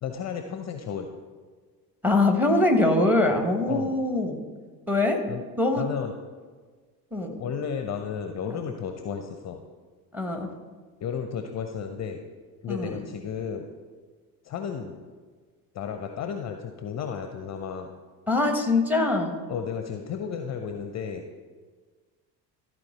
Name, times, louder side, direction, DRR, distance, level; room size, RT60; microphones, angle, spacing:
voice 1, 0.0-1.1 3.7-3.9 5.3-5.5 5.8-6.1 7.4-9.6 11.0-12.2 12.6-13.7 14.4-15.0 15.7-17.9 19.5-21.3, left 7 dB, 35° left, 6 dB, 0.6 m, -33 dB
voice 2, 2.0-4.4 4.9-5.2 5.6-5.9 7.1-7.3 8.5-8.6 10.1-10.5 12.7-13.0 18.3-19.3, left 2 dB, 5° right, 4 dB, 1.2 m, -23 dB
13.0 x 4.5 x 4.2 m, 1.5 s
figure-of-eight pair, 55°, 50 cm